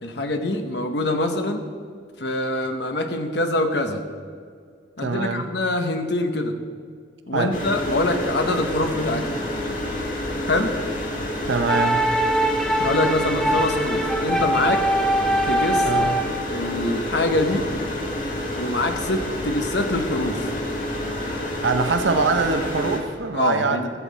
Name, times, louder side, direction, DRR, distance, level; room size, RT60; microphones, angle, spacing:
voice 1, 0.0-1.7 2.2-4.1 5.0-6.6 7.3-9.4 10.5-10.8 12.8-14.9 15.4-15.9 16.5-17.7 18.5-20.5 23.3-23.9, left 2 dB, 60° left, 6 dB, 1.1 m, -24 dB
voice 2, 5.0-5.4 7.3-7.5 11.5-12.1 15.8-16.1 21.6-23.8, right 4 dB, 75° right, 7 dB, 0.7 m, -23 dB
sound 1, 7.5-23.0, left 1 dB, 45° left, 1.6 m, -29 dB
sound 2, 11.7-16.5, right 1 dB, 5° left, 0.5 m, -22 dB
15.0 x 8.3 x 4.1 m, 2.1 s
head